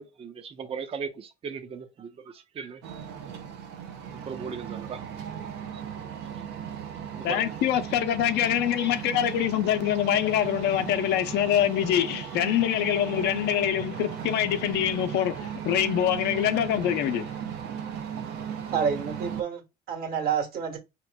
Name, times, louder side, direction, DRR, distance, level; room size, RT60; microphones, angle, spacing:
voice 1, 0.0-3.1 4.3-5.0 5.7-6.0 7.1-7.5 8.8-8.9, right 6 dB, 35° right, 0.5 m, -38 dB
sound 1, 2.8-19.4, right 8 dB, 90° right, 0.7 m, -37 dB
voice 2, 7.2-17.3, left 11 dB, 80° left, 0.6 m, -25 dB
voice 3, 18.7-20.8, right 7 dB, 65° right, 1.5 m, -29 dB
5.0 x 2.9 x 2.2 m
cardioid pair, 110°, 17 cm